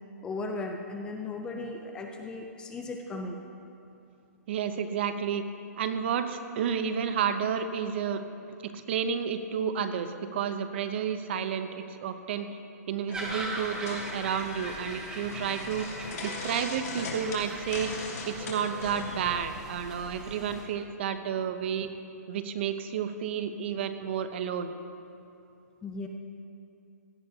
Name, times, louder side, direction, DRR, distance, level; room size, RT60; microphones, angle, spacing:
voice 1, 0.2-3.4 25.8-26.1, left 3 dB, 10° left, 3 dB, 0.4 m, -36 dB
voice 2, 4.5-5.5 5.8-8.2 8.6-12.5 12.9-15.9 16.2-17.9 18.3-21.9 22.3-24.8, right 7 dB, 40° right, 9 dB, 0.6 m, -31 dB
sound 1, 13.1-19.2, left 3 dB, 65° left, 2.8 m, -39 dB
sound 2, 13.1-20.6, right 1 dB, 5° right, 0.9 m, -41 dB
16.5 x 12.5 x 2.8 m, 2.6 s
hypercardioid pair, 160°, 9 cm